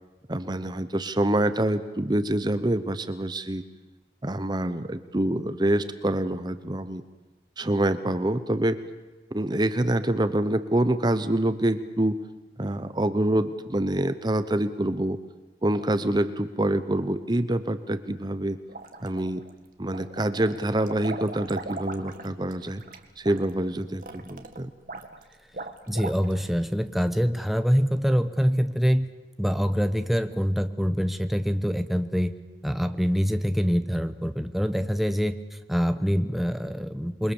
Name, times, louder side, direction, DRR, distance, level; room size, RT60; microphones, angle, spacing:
voice 1, 0.3-3.6 4.2-7.0 7.6-8.8 9.3-12.2 12.6-15.2 15.6-18.6 19.0-19.4 19.8-22.8 23.2-24.7, right 1 dB, 25° right, 11 dB, 0.9 m, -26 dB
sound 1, 18.7-19.5 19.9-26.6, right 2 dB, 50° right, 1.8 m, -39 dB
voice 2, 25.9-29.1 29.4-32.3 32.6-37.3, equal, ahead, 8 dB, 0.9 m, -25 dB
28.0 x 22.5 x 7.2 m, 1.2 s
head